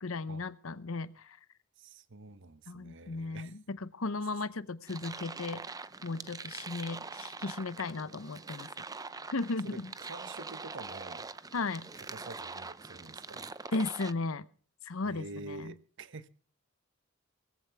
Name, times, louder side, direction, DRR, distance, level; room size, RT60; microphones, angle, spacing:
voice 1, 0.0-1.4 2.7-5.6 6.0-8.7 9.3-9.9 11.5-11.9 13.7-14.4 14.8-15.7, left 3 dB, 75° left, 0.8 m, -36 dB
voice 2, 1.8-3.6 9.6-9.8 10.1-11.3 12.0-13.5 15.0-16.3, right 3 dB, 60° right, 1.0 m, -47 dB
sound 1, 4.9-14.1, right 4 dB, 15° right, 0.6 m, -44 dB
19.5 x 15.0 x 3.4 m
head